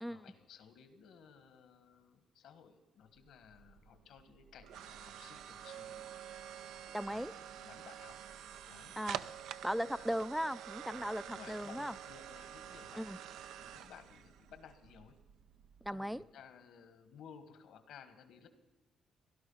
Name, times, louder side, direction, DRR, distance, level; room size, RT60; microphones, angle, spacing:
voice 1, 0.0-6.1 7.1-8.2 8.7-8.9 9.9-10.1 11.3-13.2 13.5-15.2 15.9-18.5, left 7 dB, 80° left, 1.5 m, -57 dB
sound 1, 3.2-16.2, right 10 dB, 85° right, 0.5 m, -48 dB
voice 2, 6.9-7.3 9.0-9.2 9.6-11.9 13.0-13.2 15.8-16.2, equal, ahead, 0.4 m, -37 dB
17.0 x 11.5 x 5.6 m
cardioid pair, 90°, 0 cm